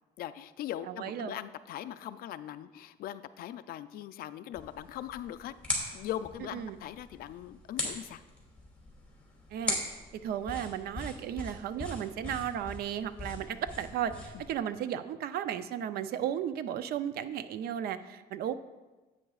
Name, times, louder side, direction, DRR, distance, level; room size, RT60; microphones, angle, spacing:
voice 1, 0.2-8.2 14.3-14.4, left 11 dB, 65° left, 13 dB, 0.4 m, -40 dB
voice 2, 0.9-1.4 6.5-6.8 9.5-9.8 10.2-18.5, right 9 dB, 65° right, 13 dB, 0.5 m, -34 dB
sound 1, 4.5-14.5, left 2 dB, 5° left, 2.6 m, -40 dB
9.8 x 8.4 x 2.4 m, 1.2 s
cardioid pair, 110°, 17 cm